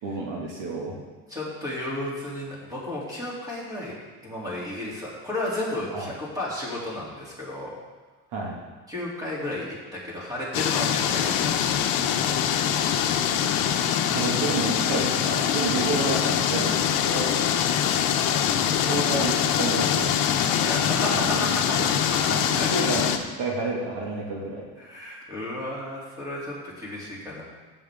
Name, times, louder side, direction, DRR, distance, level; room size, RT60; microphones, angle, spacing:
voice 1, 0.0-1.0 5.9-6.1 8.3-8.6 14.1-17.5 18.8-20.4 21.1-21.4 21.8-21.9 22.3-22.5 22.7-24.6, right 3 dB, 55° right, -3 dB, 2.5 m, -30 dB
voice 2, 1.3-3.9 4.2-7.7 8.9-11.7 20.6-21.8 22.1-22.7 24.8-27.4, left 1 dB, 10° right, -6 dB, 3.4 m, -33 dB
sound 1, 10.5-23.2, left 9 dB, 70° left, 0.9 m, -24 dB
15.0 x 7.1 x 3.8 m, 1.3 s
cardioid pair, 145°, 36 cm